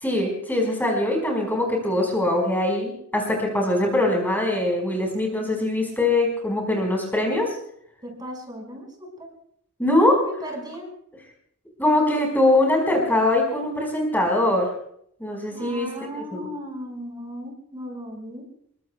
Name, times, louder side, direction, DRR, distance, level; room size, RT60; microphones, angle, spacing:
voice 1, 0.0-7.5 9.8-10.2 11.8-14.7 15.2-15.9 16.3-16.5, left 1 dB, 10° left, 0 dB, 4.8 m, -22 dB
voice 2, 8.0-9.3 10.2-10.9 15.5-18.5, equal, 20° right, 1 dB, 5.2 m, -36 dB
27.5 x 23.0 x 2.3 m, 0.67 s
head